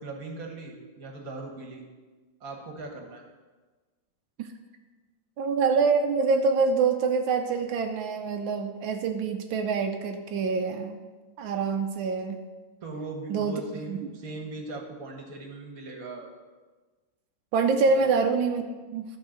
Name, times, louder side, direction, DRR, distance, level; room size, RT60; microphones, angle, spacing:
voice 1, 0.0-1.8 2.4-3.3 12.8-16.3 17.9-18.1, right 3 dB, 50° right, 2 dB, 1.6 m, -39 dB
voice 2, 5.4-11.0 11.4-12.4 13.3-13.6 13.9-14.1 17.5-19.0, right 4 dB, 85° right, 5 dB, 1.5 m, -25 dB
12.0 x 4.6 x 6.4 m, 1.3 s
omnidirectional pair, 2.1 m